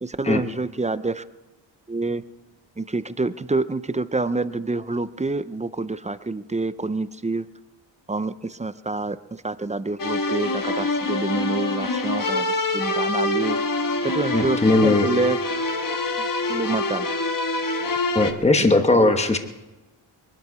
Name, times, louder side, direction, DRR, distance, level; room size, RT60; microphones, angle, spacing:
voice 1, 0.0-1.2 1.9-2.2 2.8-7.5 8.1-9.2 9.4-12.5 12.7-13.6 14.0-15.4 16.2-17.1 18.6-19.1, right 3 dB, 15° right, 14 dB, 0.4 m, -27 dB
sound 1, 10.0-18.3, left 2 dB, 45° left, 1.3 m, -25 dB
voice 2, 14.3-15.1 18.1-19.4, left 2 dB, 15° left, 7 dB, 1.1 m, -18 dB
22.0 x 12.5 x 4.8 m, 1.1 s
wide cardioid pair, 135°, 46 cm